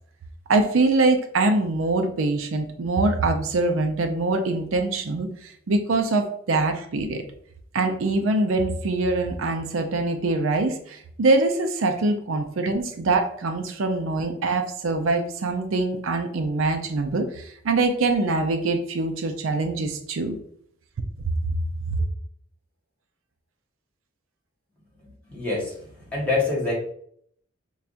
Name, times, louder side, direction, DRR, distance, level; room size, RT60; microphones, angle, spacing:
voice 1, 0.5-7.2 7.7-20.4 21.2-21.3 21.9-22.0, right 3 dB, 80° right, 7 dB, 0.5 m, -24 dB
voice 2, 25.3-25.7 26.1-26.7, left 3 dB, 10° left, -6 dB, 1.3 m, -25 dB
5.5 x 2.3 x 2.5 m, 0.64 s
head